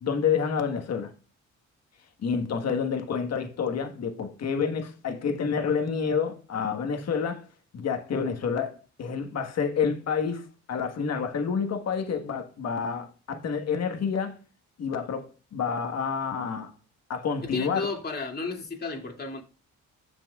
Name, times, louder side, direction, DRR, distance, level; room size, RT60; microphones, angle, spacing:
voice 1, 0.0-1.1 2.2-7.4 7.7-14.4 14.8-16.7 17.1-17.9, left 6 dB, 60° left, 1.5 m, -28 dB
voice 2, 17.4-19.4, left 3 dB, 30° left, 2.6 m, -33 dB
15.5 x 5.9 x 2.4 m
cardioid pair, 90°, 30 cm